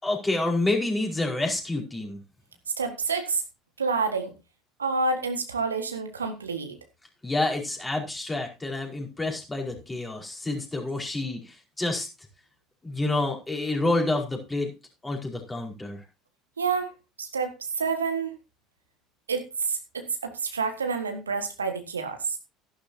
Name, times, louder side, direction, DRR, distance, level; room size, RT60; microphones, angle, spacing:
voice 1, 0.0-2.2 7.2-12.1 12.8-14.7 15.0-16.0, left 2 dB, 15° left, 1 dB, 4.8 m, -28 dB
voice 2, 2.8-3.4 3.8-4.3 4.8-6.8 16.6-16.9 17.2-18.3 19.3-22.4, right 4 dB, 80° right, 7 dB, 1.7 m, -28 dB
14.5 x 11.5 x 2.8 m, 0.26 s
figure-of-eight pair, 65°, 0 cm